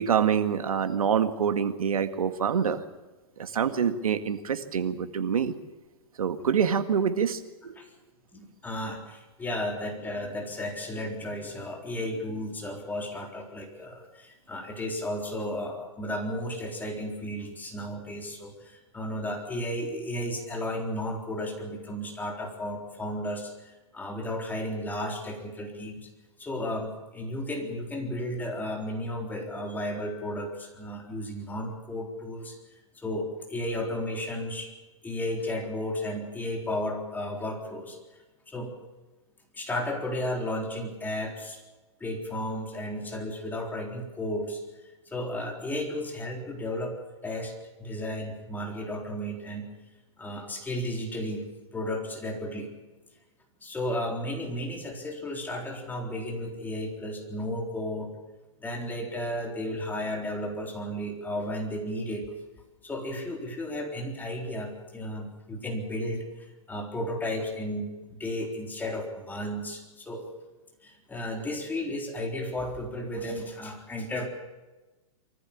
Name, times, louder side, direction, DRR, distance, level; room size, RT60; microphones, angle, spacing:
voice 1, 0.0-2.8 3.4-5.5 6.2-7.7, right 7 dB, 90° right, 9 dB, 1.9 m, -26 dB
voice 2, 8.3-26.1 26.4-32.6 33.0-34.7 35.0-38.0 38.5-38.7 39.5-41.6 42.0-44.6 45.1-46.9 47.2-47.5 47.8-49.7 50.2-52.7 53.6-58.1 58.6-62.3 62.8-70.3 70.8-74.3, left 1 dB, 10° left, 1 dB, 3.9 m, -33 dB
24.0 x 15.0 x 8.5 m, 1.2 s
hypercardioid pair, 135°, 18 cm